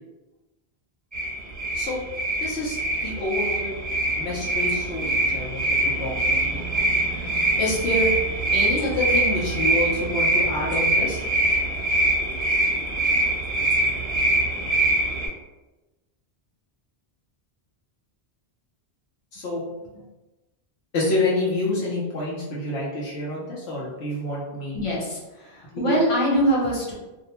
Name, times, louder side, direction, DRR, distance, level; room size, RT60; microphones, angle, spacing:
sound 1, 1.1-15.3, right 2 dB, 10° right, 0.9 m, -24 dB
voice 1, 2.4-2.8 3.0-3.7 4.1-6.9 7.6-8.1 8.5-11.3 19.3-19.6 19.9-20.0 20.9-24.8 25.9-26.0, left 2 dB, 80° left, -5 dB, 0.9 m, -27 dB
voice 2, 24.7-26.9, equal, 35° left, -4 dB, 0.7 m, -23 dB
2.5 x 2.0 x 2.8 m, 1.1 s
omnidirectional pair, 1.1 m